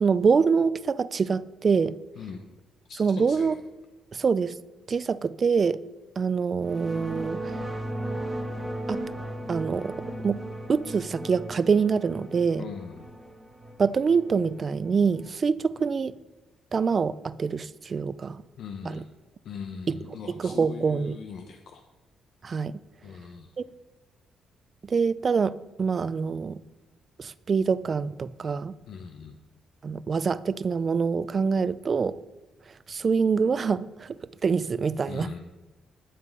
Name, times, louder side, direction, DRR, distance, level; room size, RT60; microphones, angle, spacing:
voice 1, 0.0-2.0 3.0-3.6 4.1-4.5 4.9-5.8 6.2-7.6 8.9-9.0 9.5-10.4 10.7-12.6 13.8-16.2 16.7-18.4 18.9-19.0 19.9-20.0 20.4-21.2 22.4-22.7 23.6-23.7 24.8-26.6 27.2-28.7 29.8-32.2 32.7-35.3, right 5 dB, 40° right, 0.4 m, -25 dB
voice 2, 2.9-3.6 12.6-13.1 18.6-19.1 19.4-21.8 23.0-23.6 28.9-29.4 35.1-35.4, left 6 dB, 70° left, 0.8 m, -40 dB
sound 1, 6.6-15.3, right 1 dB, 10° right, 1.5 m, -36 dB
11.0 x 7.4 x 5.4 m
cardioid pair, 90°, 0 cm